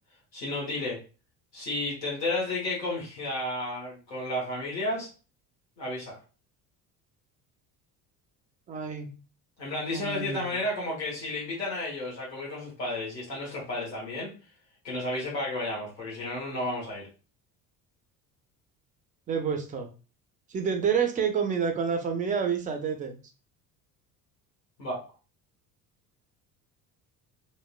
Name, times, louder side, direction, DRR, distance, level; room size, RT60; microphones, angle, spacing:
voice 1, 0.3-1.0 1.5-5.1 5.8-6.2 9.6-14.3 14.8-17.1 24.8-25.0, left 2 dB, 80° left, -4 dB, 1.2 m, -32 dB
voice 2, 8.7-9.2 9.9-10.6 19.3-19.9 20.5-23.2, right 6 dB, 20° right, 5 dB, 0.3 m, -29 dB
2.9 x 2.0 x 2.3 m, 0.33 s
figure-of-eight pair, 60°, 50 cm